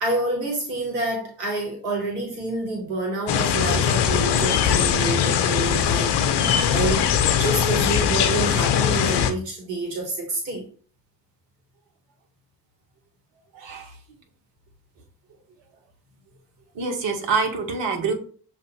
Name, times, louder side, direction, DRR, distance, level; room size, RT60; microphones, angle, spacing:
voice 1, 0.0-10.6, right 2 dB, 90° right, 0 dB, 1.0 m, -28 dB
sound 1, 3.3-9.3, left 8 dB, 60° left, 0.7 m, -21 dB
voice 2, 13.5-13.9 16.7-18.1, right 4 dB, 65° right, 3 dB, 1.1 m, -26 dB
6.5 x 2.5 x 2.8 m, 0.43 s
hypercardioid pair, 40°, 47 cm